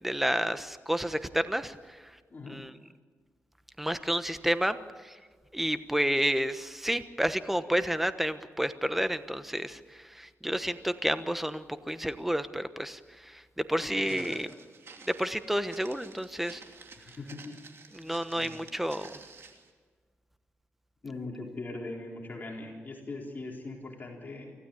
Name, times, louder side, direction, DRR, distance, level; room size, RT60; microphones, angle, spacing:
voice 1, 0.0-2.0 2.5-2.7 3.8-4.8 5.0-5.2 5.5-14.5 15.1-16.6 17.9-19.1, equal, 5° right, 11 dB, 1.1 m, -30 dB
voice 2, 2.3-2.6 13.8-14.4 16.9-17.5 18.3-18.6 21.0-24.5, left 2 dB, 40° left, -1 dB, 4.2 m, -41 dB
Walk footsteps, 14.0-19.7, right 4 dB, 60° right, 2.9 m, -51 dB
24.5 x 16.0 x 8.7 m, 1.5 s
cardioid pair, 95°, 5 cm